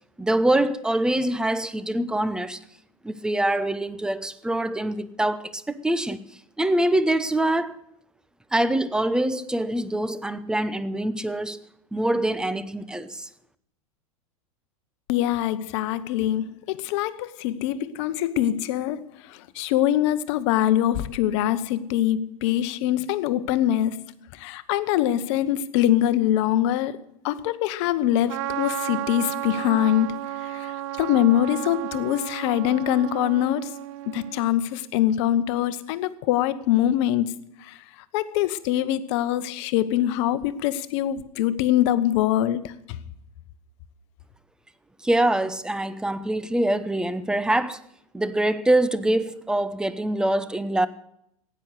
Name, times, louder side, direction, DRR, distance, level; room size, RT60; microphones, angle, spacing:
voice 1, 0.2-2.6 3.0-6.2 6.6-7.7 8.5-13.3 45.0-47.8 48.1-50.9, right 1 dB, 5° right, 0.8 m, -24 dB
voice 2, 15.1-24.1 24.3-27.0 27.2-33.7 34.1-37.8 38.1-42.7, left 12 dB, 55° left, 1.0 m, -24 dB
Trumpet, 28.3-34.5, right 15 dB, 55° right, 0.5 m, -33 dB
16.0 x 9.8 x 6.6 m
figure-of-eight pair, 90°, 18 cm